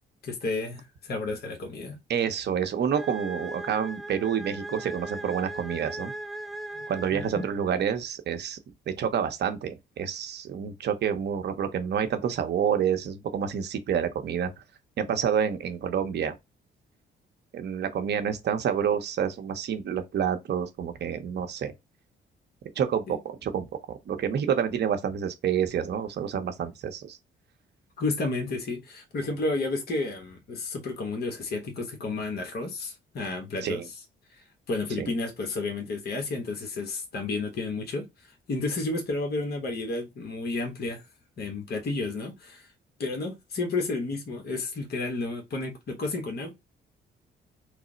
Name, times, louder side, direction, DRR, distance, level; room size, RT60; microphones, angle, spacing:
voice 1, 0.2-2.0 6.7-6.8 7.1-7.5 23.1-23.2 28.0-33.8 34.3-38.1 38.5-41.0 41.4-42.6 43.0-46.5, left 3 dB, 50° left, 1.0 m, -31 dB
voice 2, 2.1-6.1 6.9-8.6 8.9-14.5 15.0-16.4 17.5-21.7 22.8-23.7 24.1-27.2 33.6-33.9 35.0-35.1, right 8 dB, 60° right, 0.6 m, -28 dB
sound 1, 2.9-7.8, right 2 dB, ahead, 0.3 m, -39 dB
3.1 x 2.0 x 3.8 m
cardioid pair, 90°, 20 cm